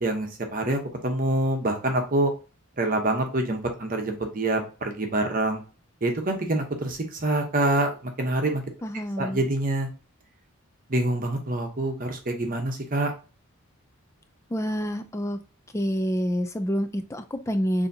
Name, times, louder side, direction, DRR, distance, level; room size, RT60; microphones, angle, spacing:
voice 1, 0.0-2.3 2.8-5.6 6.0-8.6 9.2-9.9 10.9-13.1, right 2 dB, 40° right, 3 dB, 0.8 m, -26 dB
voice 2, 8.8-9.4 14.5-15.4 15.7-17.9, equal, 15° left, 9 dB, 0.4 m, -27 dB
6.8 x 2.8 x 2.7 m, 0.33 s
head